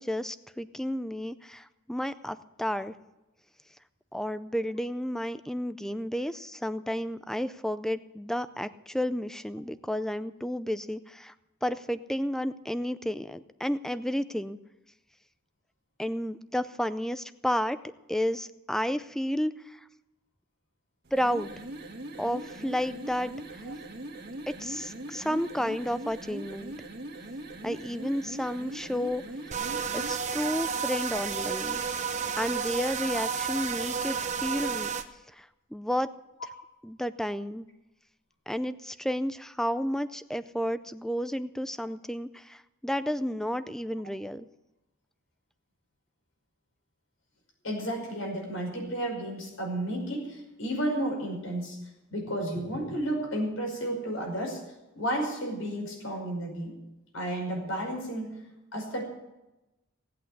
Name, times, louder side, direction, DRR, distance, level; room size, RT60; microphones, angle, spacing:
voice 1, 0.0-2.9 4.1-11.3 11.6-14.6 16.0-17.8 18.1-19.8 21.1-21.5 22.2-23.3 24.5-26.7 27.6-29.2 29.9-31.8 32.4-34.9 35.3-36.1 36.8-37.7 38.5-44.5, equal, ahead, 14 dB, 0.4 m, -31 dB
sound 1, 21.0-30.3, right 1 dB, 50° right, 1.7 m, -41 dB
sound 2, 29.5-35.0, right 6 dB, 35° right, 1.0 m, -31 dB
voice 2, 47.6-51.8 52.1-54.6 54.9-56.7 57.1-58.4 58.7-59.0, right 1 dB, 85° left, 1 dB, 5.6 m, -32 dB
17.5 x 8.6 x 8.1 m, 0.99 s
head